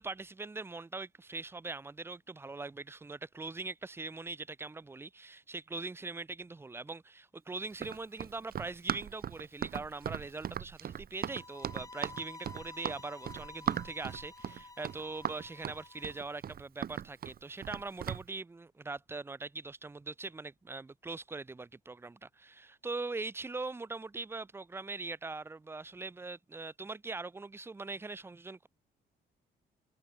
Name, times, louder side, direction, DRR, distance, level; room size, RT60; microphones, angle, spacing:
voice 1, 0.0-28.7, right 3 dB, 10° right, 0.4 m, -42 dB
Run, 7.7-18.2, right 9 dB, 50° right, 0.7 m, -38 dB
sound 1, 11.2-16.2, left 3 dB, 15° left, 0.8 m, -51 dB
cardioid pair, 90°, 20 cm